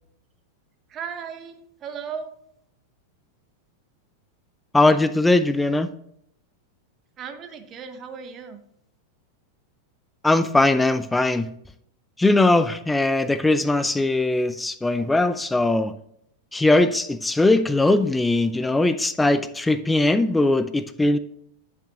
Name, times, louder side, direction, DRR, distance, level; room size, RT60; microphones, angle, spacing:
voice 1, 0.9-2.3 7.2-8.6, right 6 dB, 30° right, 8 dB, 0.9 m, -36 dB
voice 2, 4.7-5.9 10.2-11.5 12.2-15.9 16.5-21.2, left 2 dB, 10° left, 12 dB, 0.4 m, -20 dB
10.0 x 5.9 x 2.8 m, 0.73 s
figure-of-eight pair, 90°, 0 cm